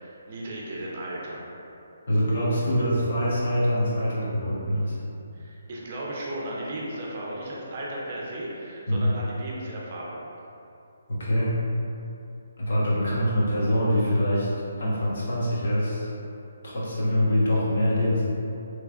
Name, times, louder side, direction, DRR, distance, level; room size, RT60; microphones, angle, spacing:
voice 1, 0.0-1.5 5.3-10.2, right 1 dB, 40° right, -4 dB, 0.6 m, -35 dB
voice 2, 2.1-5.0 8.9-9.1 11.1-11.6 12.6-14.5 14.8-16.1 16.6-18.2, equal, 60° left, -7 dB, 1.0 m, -24 dB
3.3 x 3.2 x 2.4 m, 2.7 s
hypercardioid pair, 160°, 0 cm